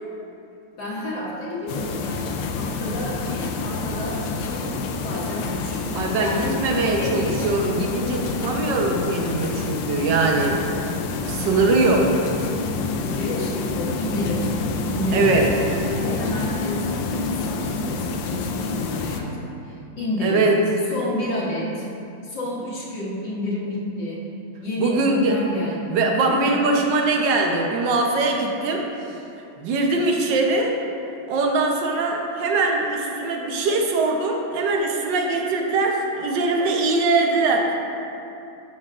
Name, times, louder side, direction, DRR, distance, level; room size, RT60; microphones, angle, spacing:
voice 1, 0.8-4.7 5.0-5.8 6.2-6.6 7.0-7.5 11.9-12.1 13.1-14.5 14.8-20.5 20.9-21.9 22.2-24.3 24.6-26.6 28.3-28.5, left 1 dB, 65° left, -7 dB, 1.8 m, -30 dB
sound 1, 1.7-19.2, left 4 dB, 80° left, 1.4 m, -28 dB
voice 2, 5.9-10.7 11.0-12.1 15.1-15.5 20.2-20.6 24.8-25.4 25.9-28.8 29.6-30.8 31.3-37.7, right 3 dB, 65° right, 1 dB, 1.4 m, -22 dB
12.0 x 7.0 x 2.5 m, 2.7 s
omnidirectional pair, 2.2 m